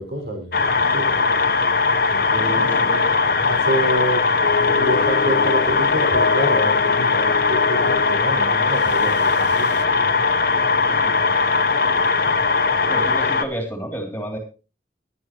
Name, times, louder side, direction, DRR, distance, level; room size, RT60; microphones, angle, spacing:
voice 1, 0.0-1.4 2.1-3.0 3.4-4.3 4.6-10.0, equal, 75° right, 1 dB, 6.1 m, -28 dB
sound 1, 0.5-13.4, left 4 dB, 50° left, 1.0 m, -19 dB
sound 2, 2.4-3.2 3.5-3.7 4.4-9.8, left 4 dB, 80° left, 0.9 m, -28 dB
voice 2, 2.6-2.9 10.9-12.3 12.9-14.4, right 1 dB, 10° left, 2 dB, 3.1 m, -32 dB
17.0 x 11.5 x 3.1 m, 0.33 s
head